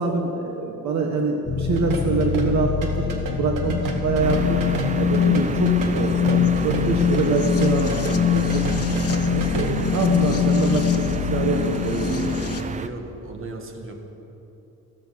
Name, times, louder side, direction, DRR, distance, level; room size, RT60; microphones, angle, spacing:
voice 1, 0.0-4.6 4.9-8.7 9.2-11.0 11.3-12.6, right 4 dB, 60° right, 2 dB, 1.3 m, -25 dB
sound 1, 1.5-12.6, left 8 dB, 50° left, 1.1 m, -23 dB
sound 2, 1.8-10.1, right 4 dB, 85° right, 2.0 m, -31 dB
sound 3, 4.2-12.9, right 4 dB, 25° right, 0.4 m, -32 dB
voice 2, 12.6-14.0, right 2 dB, 40° right, 4 dB, 1.7 m, -37 dB
15.0 x 14.5 x 5.8 m, 3.0 s
cardioid pair, 150°, 32 cm